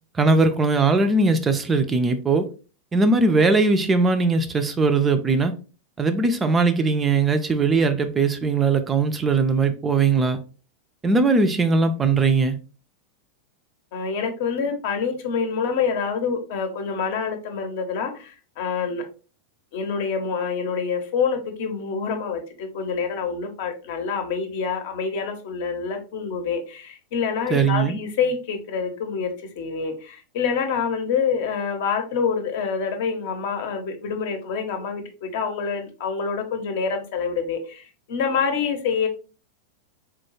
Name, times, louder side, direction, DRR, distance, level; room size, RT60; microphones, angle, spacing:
voice 1, 0.1-2.5 2.9-5.5 6.0-10.4 11.0-12.6 27.5-28.0, right 3 dB, 20° right, 0.3 m, -20 dB
voice 2, 13.9-19.0 19.7-39.1, left 6 dB, 50° left, 0.7 m, -26 dB
3.7 x 2.2 x 3.1 m
figure-of-eight pair, 90°, 0 cm